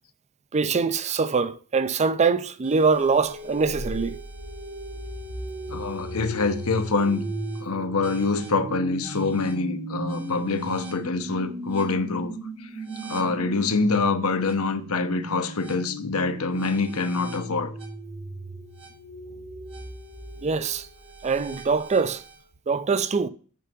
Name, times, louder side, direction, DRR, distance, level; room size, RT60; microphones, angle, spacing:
voice 1, 0.5-4.2 20.4-20.9 21.2-22.2 22.7-23.3, right 4 dB, 30° right, 0.5 m, -23 dB
sound 1, 2.6-22.4, right 1 dB, 85° right, 3.8 m, -37 dB
voice 2, 5.7-7.3 7.6-12.4 13.1-17.7, left 3 dB, 70° left, 0.9 m, -25 dB
9.0 x 5.6 x 5.3 m
head